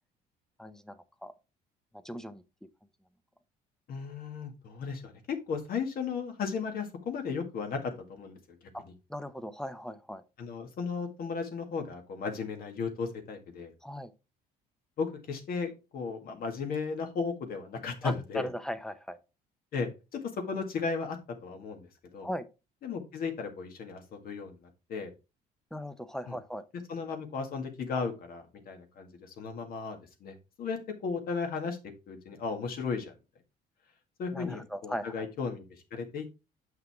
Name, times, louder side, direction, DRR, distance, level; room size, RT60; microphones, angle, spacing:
voice 1, 0.6-1.3 1.9-2.4 8.7-8.8 9.1-10.2 13.8-14.1 18.0-19.2 22.2-22.5 25.7-26.6 34.3-35.3, equal, 5° left, 0.7 m, -38 dB
voice 2, 3.9-8.4 10.4-13.7 15.0-18.5 19.7-20.2 20.5-21.8 22.1-22.3 22.8-25.1 26.3-26.4 26.9-31.8 32.1-33.1 34.2-35.6 35.9-36.4, left 5 dB, 60° left, 1.9 m, -35 dB
7.5 x 5.8 x 3.5 m
cardioid pair, 110°, 17 cm